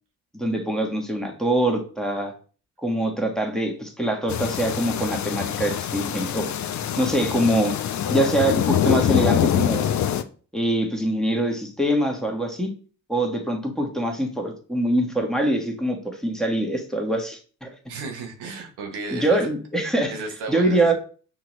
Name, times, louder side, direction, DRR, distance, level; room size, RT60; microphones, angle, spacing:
voice 1, 0.3-2.3 2.8-6.5 7.0-7.7 8.1-9.9 10.5-12.7 13.1-17.7 19.1-20.1 20.5-20.9, right 1 dB, ahead, 1 dB, 1.3 m, -24 dB
sound 1, 4.3-10.2, left 10 dB, 45° left, 0.5 m, -24 dB
voice 2, 17.9-19.5 20.1-20.9, right 3 dB, 80° right, 3 dB, 1.0 m, -33 dB
6.0 x 2.8 x 3.0 m, 0.40 s
supercardioid pair, 55°, 40 cm